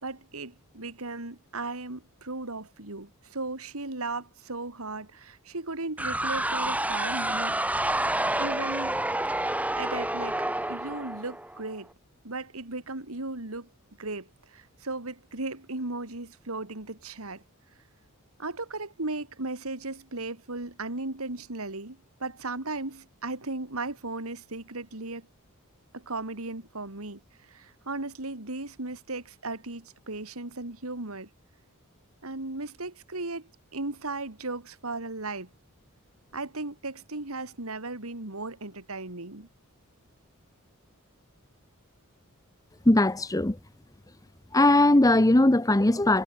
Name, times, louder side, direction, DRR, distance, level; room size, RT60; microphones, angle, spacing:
voice 1, 0.0-7.6 8.4-9.0 9.8-11.9 12.2-13.7 14.0-17.4 18.4-25.3 25.9-31.3 32.2-35.5 36.3-39.5, right 2 dB, 75° right, 2.7 m, -36 dB
sound 1, 6.0-11.7, right 1 dB, 5° right, 2.5 m, -29 dB
voice 2, 42.9-43.6 44.5-46.2, left 1 dB, 15° left, 0.8 m, -20 dB
head